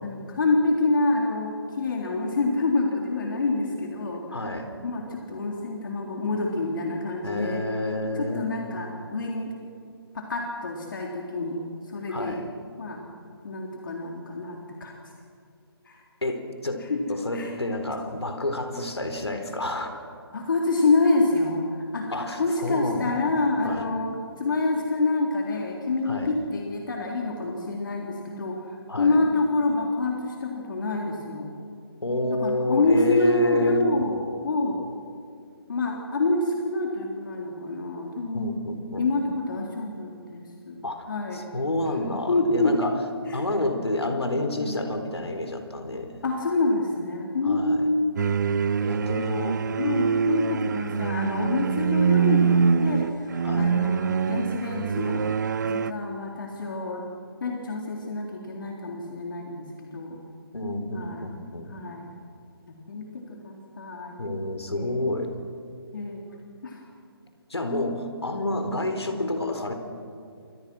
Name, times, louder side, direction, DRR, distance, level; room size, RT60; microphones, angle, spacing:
voice 1, 0.0-7.6 8.2-9.5 10.1-12.4 12.8-13.0 13.4-14.9 15.9-16.0 16.8-17.0 17.3-17.5 19.7-19.8 20.3-31.5 32.3-34.8 35.7-38.5 39.0-40.8 41.1-41.4 42.3-42.7 43.3-43.4 44.6-44.8 46.2-48.3 49.8-55.2 55.7-57.0 57.4-60.2 60.9-61.2 61.7-62.1 62.7-64.2 64.7-65.1 65.9-66.3 66.6-66.8, left 2 dB, 55° left, 0 dB, 3.6 m, -27 dB
voice 2, 4.3-4.7 7.2-8.5 12.1-12.4 16.2-20.0 22.1-23.1 23.6-23.9 26.0-26.3 28.9-29.2 32.0-33.8 38.3-39.0 40.8-43.0 43.3-46.2 47.4-47.9 48.8-49.6 53.4-53.7 60.5-61.7 64.2-65.3 67.5-69.7, left 1 dB, 85° left, 6 dB, 4.1 m, -29 dB
sound 1, 48.2-55.9, right 6 dB, 45° right, 0.8 m, -24 dB
28.0 x 24.5 x 6.2 m, 2.4 s
figure-of-eight pair, 150°, 13 cm